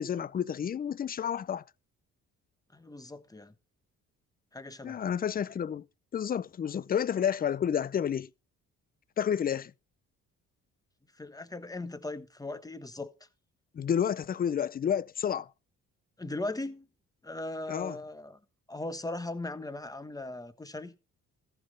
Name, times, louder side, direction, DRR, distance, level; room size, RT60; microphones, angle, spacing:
voice 1, 0.0-1.6 4.8-5.8 6.1-8.3 9.2-9.7 13.7-15.5 17.7-18.0, left 8 dB, 30° left, 0.4 m, -30 dB
voice 2, 2.7-3.5 4.5-5.0 11.2-13.1 16.2-16.9 17.2-18.4 18.7-20.9, left 2 dB, 10° left, 1.1 m, -38 dB
14.0 x 5.7 x 5.3 m
cardioid pair, 90°, 30 cm